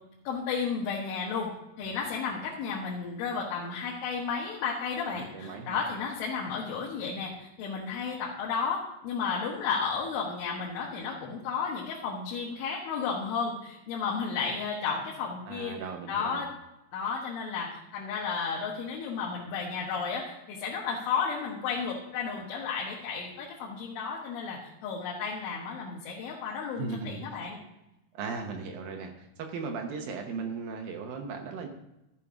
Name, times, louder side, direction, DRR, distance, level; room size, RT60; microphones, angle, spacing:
voice 1, 0.3-1.5 1.8-15.7 16.1-16.5 16.9-27.6, left 5 dB, 80° left, -3 dB, 3.9 m, -33 dB
voice 2, 5.1-5.8 15.5-16.4 26.8-27.2 28.1-31.7, right 5 dB, 75° right, 3 dB, 2.2 m, -37 dB
12.5 x 7.5 x 4.9 m, 0.93 s
omnidirectional pair, 5.4 m